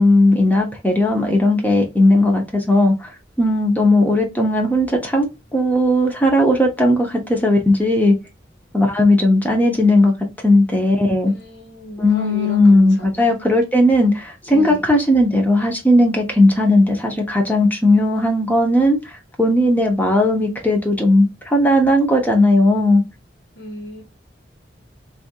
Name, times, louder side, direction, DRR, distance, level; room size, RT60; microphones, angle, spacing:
voice 1, 0.0-3.1 3.4-5.3 5.5-8.2 8.7-10.1 10.4-11.3 12.0-19.0 19.4-23.0, left 1 dB, 10° left, 0.7 m, -16 dB
voice 2, 11.3-13.3 14.5-14.8 23.6-24.0, right 1 dB, 65° left, 1.2 m, -34 dB
3.2 x 2.6 x 2.2 m
head